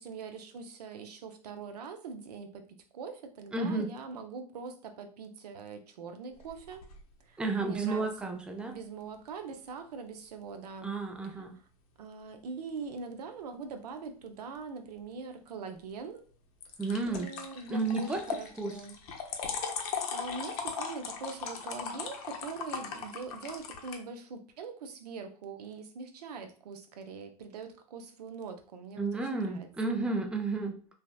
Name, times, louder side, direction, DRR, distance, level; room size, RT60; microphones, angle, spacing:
voice 1, 0.0-2.6 2.9-6.8 7.2-8.4 8.7-11.0 11.4-11.5 12.0-16.2 17.1-19.0 20.1-29.7, right 5 dB, 85° right, 7 dB, 0.5 m, -43 dB
voice 2, 3.5-3.9 7.4-8.7 10.8-11.5 16.8-17.3 17.7-18.2 18.6-18.8 29.0-30.8, right 3 dB, 5° right, 4 dB, 0.3 m, -32 dB
sound 1, 6.3-7.0 16.6-24.0, left 6 dB, 70° left, 0.5 m, -38 dB
2.7 x 2.0 x 2.2 m, 0.40 s
hypercardioid pair, 100°, 20 cm